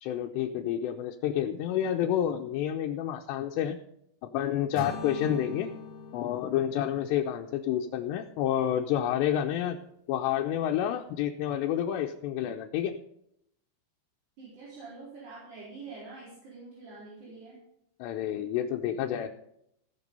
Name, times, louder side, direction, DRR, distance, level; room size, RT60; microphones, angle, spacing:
voice 1, 0.0-3.8 4.2-5.7 6.1-9.8 10.1-13.0 18.0-19.3, left 10 dB, 80° left, 2 dB, 2.9 m, -29 dB
sound 1, 4.8-8.8, left 4 dB, 60° left, 2.5 m, -44 dB
voice 2, 14.4-17.6, right 4 dB, 65° right, -9 dB, 6.5 m, -46 dB
18.0 x 7.0 x 5.4 m, 0.76 s
omnidirectional pair, 5.0 m